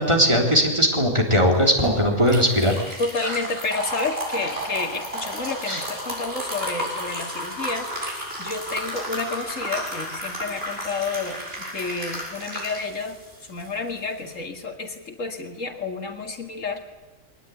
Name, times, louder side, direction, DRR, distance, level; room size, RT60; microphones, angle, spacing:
voice 1, 0.0-2.8 3.3-3.4 5.7-5.8, equal, 20° right, 1 dB, 3.8 m, -19 dB
sound 1, 1.4-14.4, equal, 50° right, 7.6 m, -32 dB
voice 2, 3.0-11.4 11.7-13.2 13.5-16.9, left 3 dB, 85° left, 5 dB, 2.7 m, -30 dB
22.5 x 19.0 x 9.4 m, 1.0 s
omnidirectional pair, 1.3 m